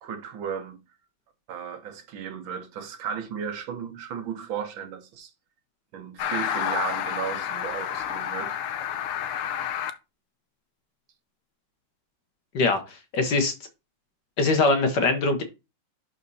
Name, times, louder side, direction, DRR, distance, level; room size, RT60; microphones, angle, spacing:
voice 1, 0.0-0.8 1.5-5.3 5.9-8.6, right 7 dB, 70° right, 1.6 m, -34 dB
sound 1, 6.2-9.9, left 9 dB, 85° left, 1.6 m, -30 dB
voice 2, 13.1-13.5 14.4-15.4, left 3 dB, 60° left, 1.5 m, -22 dB
11.5 x 4.3 x 2.7 m
omnidirectional pair, 2.3 m